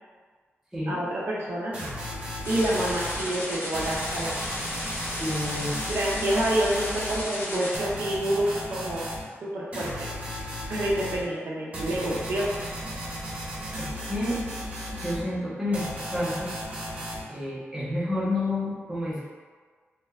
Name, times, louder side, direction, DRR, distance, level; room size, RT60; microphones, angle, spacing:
voice 1, 0.9-1.7 2.5-4.5 5.9-9.1 9.4-10.1 10.7-12.5, right 1 dB, 60° right, -5 dB, 0.4 m, -28 dB
sound 1, 1.7-3.2 3.7-7.2 7.7-9.2 9.7-11.2 11.7-15.2 15.7-17.2, equal, 35° right, 0.9 m, -35 dB
sound 2, 2.4-7.8, left 1 dB, 50° left, 0.5 m, -34 dB
voice 2, 5.2-5.8 13.8-14.4 14.9-16.6 17.3-19.3, left 1 dB, 5° right, -8 dB, 0.6 m, -30 dB
2.7 x 2.1 x 2.2 m, 1.5 s
wide cardioid pair, 150°, 5 cm